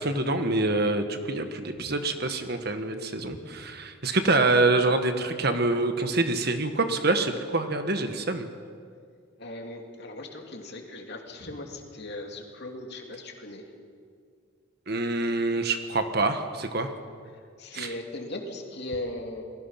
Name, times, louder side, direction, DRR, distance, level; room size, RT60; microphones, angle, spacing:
voice 1, 0.0-8.5 14.9-16.9 17.7-17.9, right 2 dB, 50° right, 7 dB, 1.5 m, -26 dB
voice 2, 9.4-13.6 17.3-19.4, left 1 dB, 50° left, 2 dB, 3.0 m, -38 dB
29.5 x 20.5 x 5.9 m, 2.2 s
head